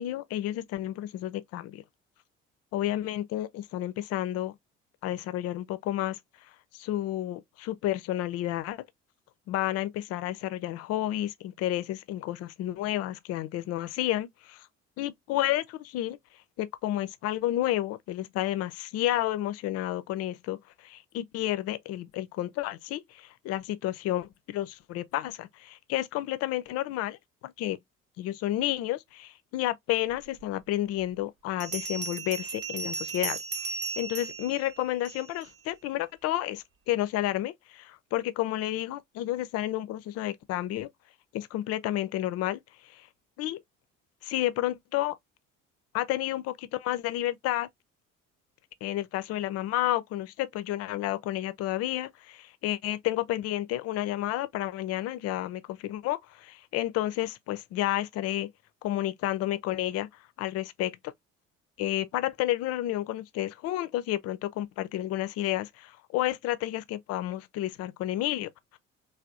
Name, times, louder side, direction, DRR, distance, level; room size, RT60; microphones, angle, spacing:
voice 1, 0.0-1.8 2.7-4.5 5.0-6.2 6.7-8.8 9.5-14.7 15.0-16.2 16.6-27.8 28.2-40.9 41.3-43.1 43.4-43.6 44.2-45.1 45.9-47.7 48.8-58.5 58.8-61.1 61.8-68.8, left 14 dB, 40° left, 0.4 m, -31 dB
Bell, 30.4-30.5 31.6-35.5, right 4 dB, 85° right, 0.6 m, -36 dB
3.4 x 2.3 x 2.3 m
figure-of-eight pair, 50°, 38 cm